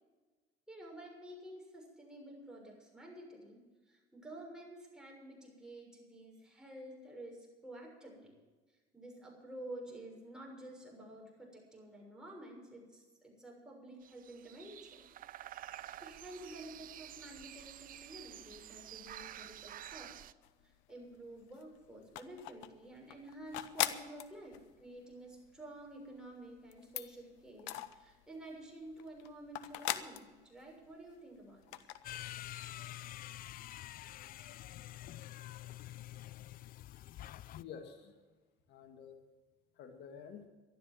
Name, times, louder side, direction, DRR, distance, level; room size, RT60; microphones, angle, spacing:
voice 1, 0.7-8.4 8.9-15.0 16.0-20.2 20.9-31.8, right 1 dB, 5° right, -1 dB, 6.6 m, -51 dB
sound 1, 14.0-20.3, right 12 dB, 50° right, 0.6 m, -50 dB
sound 2, 20.4-21.1 21.4-28.5 28.9-31.2 31.5-32.2, left 14 dB, 90° left, 0.8 m, -41 dB
sound 3, 32.0-37.6, left 14 dB, 55° left, 0.4 m, -47 dB
voice 2, 37.0-38.3 38.7-39.2 39.7-40.4, left 7 dB, 75° left, 5 dB, 1.9 m, -51 dB
13.0 x 12.0 x 7.6 m, 1.3 s
supercardioid pair, 90°, 18 cm